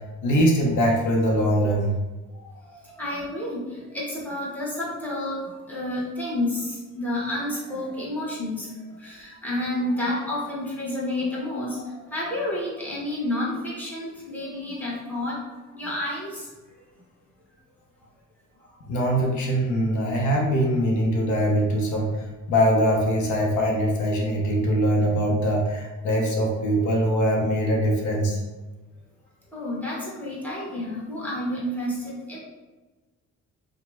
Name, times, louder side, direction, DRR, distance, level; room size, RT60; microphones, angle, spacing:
voice 1, 0.2-1.9 18.9-28.4, equal, 75° left, -1 dB, 0.7 m, -22 dB
voice 2, 2.6-3.6 3.9-5.4 5.7-6.7 6.9-8.7 9.0-15.3 15.7-16.4 29.5-32.4, left 1 dB, 5° left, -7 dB, 1.1 m, -30 dB
2.9 x 2.1 x 3.2 m, 1.2 s
cardioid pair, 90°, 30 cm